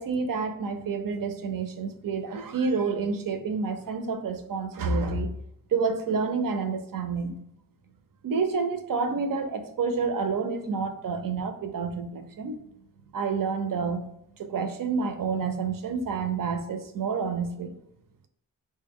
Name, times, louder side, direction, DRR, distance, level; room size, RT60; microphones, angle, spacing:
voice 1, 0.0-5.3 5.7-7.4 8.2-12.6 13.1-14.1 14.4-17.8, right 5 dB, 65° right, 7 dB, 0.5 m, -29 dB
3.2 x 2.2 x 3.6 m, 0.75 s
wide cardioid pair, 65°, 36 cm